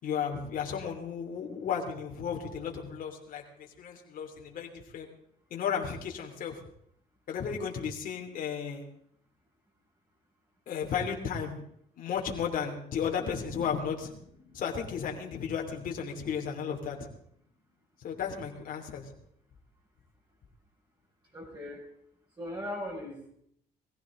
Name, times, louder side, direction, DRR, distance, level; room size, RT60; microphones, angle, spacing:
voice 1, 0.0-5.1 5.5-6.6 7.3-8.8 10.7-11.6 12.0-14.1 14.5-17.1 18.0-19.1, left 7 dB, 55° left, 1 dB, 2.9 m, -34 dB
sound 1, 13.0-17.7, left 2 dB, 30° left, 3.8 m, -53 dB
voice 2, 21.3-21.9 22.4-23.3, left 1 dB, 25° right, -3 dB, 5.2 m, -38 dB
20.5 x 15.5 x 3.8 m, 0.69 s
cardioid pair, 110°, 17 cm